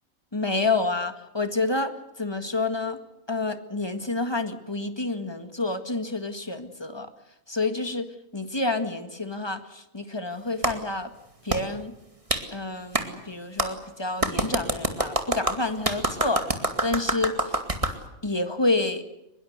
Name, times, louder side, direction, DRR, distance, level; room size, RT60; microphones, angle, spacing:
voice 1, 0.3-3.0 3.3-7.1 7.5-11.1 11.4-11.9 12.5-16.4 16.8-17.5 18.2-19.0, left 2 dB, 20° left, 9 dB, 1.8 m, -28 dB
Clapping, 10.6-10.7 11.5-11.6 12.3-12.4 12.9-13.1 13.6-13.7 14.2-18.0, right 2 dB, 25° right, 2.3 m, -26 dB
23.5 x 22.0 x 8.1 m, 0.92 s
omnidirectional pair, 1.4 m